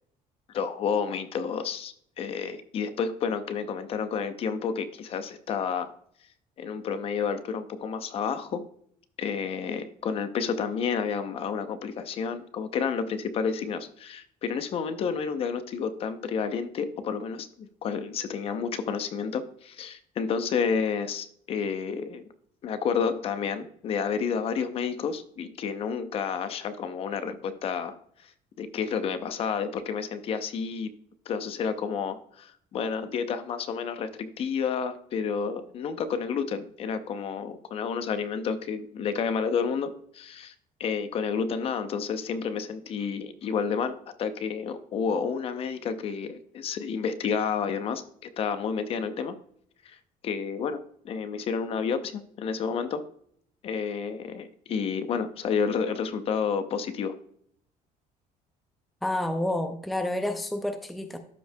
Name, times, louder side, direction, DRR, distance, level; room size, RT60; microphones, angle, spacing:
voice 1, 0.5-5.9 6.6-8.6 9.2-22.3 22.6-28.0 28.6-30.9 31.3-40.5 40.8-49.4 49.8-50.0 50.2-53.0 53.6-57.2, left 6 dB, 40° left, 11 dB, 0.6 m, -30 dB
voice 2, 59.0-61.2, left 1 dB, ahead, 7 dB, 0.4 m, -29 dB
12.5 x 5.4 x 2.2 m, 0.66 s
cardioid pair, 165°, 15 cm